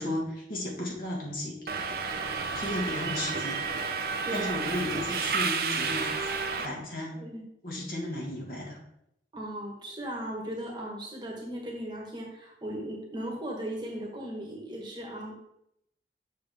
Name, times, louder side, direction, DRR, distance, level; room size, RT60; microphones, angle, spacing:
voice 1, 0.0-1.6 2.5-3.6 4.3-6.1 6.6-7.2 7.6-8.8, left 1 dB, 50° left, -2 dB, 1.7 m, -34 dB
Subway metro underground, 1.7-6.7, right 5 dB, 55° right, 0.7 m, -31 dB
voice 2, 9.3-15.3, right 1 dB, 25° right, -1 dB, 1.4 m, -37 dB
6.7 x 6.3 x 3.5 m, 0.79 s
head